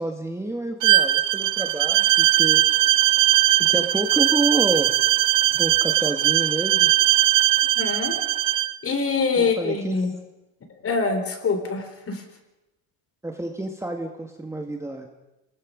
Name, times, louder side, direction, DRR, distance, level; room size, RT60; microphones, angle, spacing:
voice 1, 0.0-2.6 3.6-5.0 5.6-6.9 9.4-10.0 13.2-15.1, right 2 dB, 5° right, 3 dB, 1.9 m, -29 dB
Bowed string instrument, 0.8-8.7, right 14 dB, 50° right, 1.0 m, -20 dB
voice 2, 7.8-8.1 8.8-10.1 10.8-12.2, left 4 dB, 35° left, 7 dB, 3.9 m, -24 dB
27.0 x 20.0 x 5.3 m, 0.98 s
cardioid pair, 120°, 42 cm